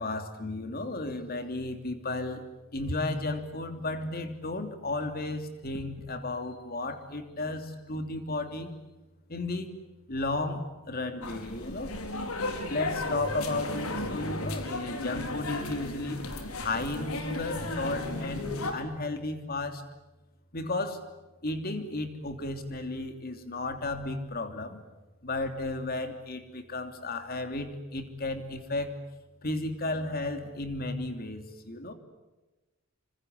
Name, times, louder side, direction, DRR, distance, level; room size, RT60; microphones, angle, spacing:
voice 1, 0.0-2.5 2.7-8.7 9.3-9.8 10.1-11.9 12.7-16.2 16.6-19.8 20.5-21.0 21.4-24.8 25.2-28.9 29.4-31.9, left 2 dB, 45° left, 7 dB, 3.1 m, -34 dB
sound 1, 11.2-18.7, left 2 dB, 80° left, 4.2 m, -35 dB
27.0 x 25.5 x 8.3 m, 1.1 s
head